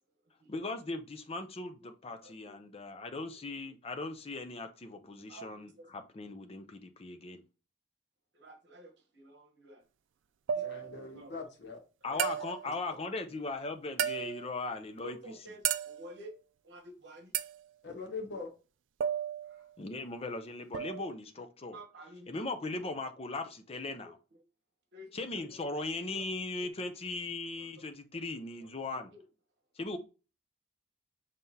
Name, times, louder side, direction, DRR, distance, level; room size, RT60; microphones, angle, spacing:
voice 1, 0.5-7.4 12.0-15.2 19.8-21.8 22.3-24.2 25.1-29.1 29.8-30.0, left 2 dB, 30° left, 0.6 m, -38 dB
voice 2, 2.0-2.6 3.3-3.4 5.3-5.9 8.3-9.9 10.5-10.8 11.1-11.3 12.1-12.6 12.9-13.0 13.5-13.7 15.0-16.4 16.6-17.4 19.4-19.7 21.4-21.5 21.7-22.5 23.9-24.4 24.9-26.3 26.6-26.8 27.6-27.7 28.6-29.3, right 1 dB, 65° right, 1.1 m, -52 dB
sound 1, 10.5-11.1 12.2-12.8 14.0-14.6 15.6-16.2 17.3-17.6 19.0-19.7 20.7-21.1, right 9 dB, 80° right, 0.4 m, -34 dB
voice 3, 10.6-11.8 17.8-18.5, left 4 dB, 65° left, 1.2 m, -42 dB
5.6 x 3.3 x 2.8 m
head